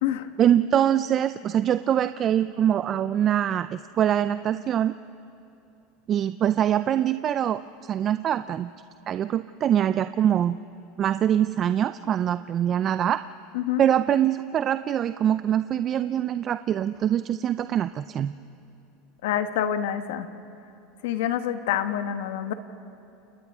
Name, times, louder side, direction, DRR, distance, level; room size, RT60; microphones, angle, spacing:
voice 1, 0.4-4.9 6.1-8.7 9.1-10.6 11.0-13.2 13.8-18.3, right 10 dB, 40° right, 12 dB, 0.5 m, -24 dB
voice 2, 19.2-20.3 21.0-22.5, left 10 dB, 80° left, 9 dB, 1.3 m, -27 dB
29.0 x 28.5 x 3.6 m, 2.7 s
supercardioid pair, 110°, 0 cm